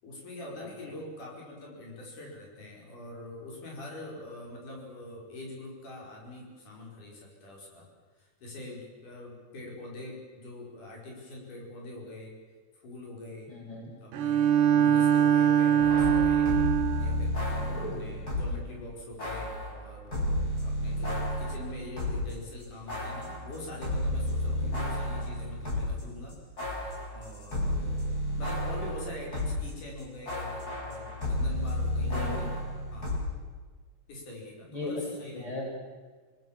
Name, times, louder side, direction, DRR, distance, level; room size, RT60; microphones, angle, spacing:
voice 1, 0.0-7.9 8.2-12.3 12.8-13.5 14.0-16.6 17.0-26.4 27.1-32.5 32.9-33.3 34.1-35.5, left 1 dB, 80° left, -2 dB, 6.7 m, -44 dB
voice 2, 13.5-13.9 14.7-14.9 17.6-18.0 24.6-24.8 32.0-32.6 34.7-35.8, left 2 dB, 10° left, -2 dB, 6.9 m, -38 dB
Bowed string instrument, 14.1-17.3, right 9 dB, 85° right, 2.7 m, -23 dB
sound 1, 15.8-18.6 19.2-22.3 22.6-29.7 30.0-33.2, left 1 dB, 30° left, 6.7 m, -32 dB
27.5 x 19.0 x 7.4 m, 1.4 s
omnidirectional pair, 3.6 m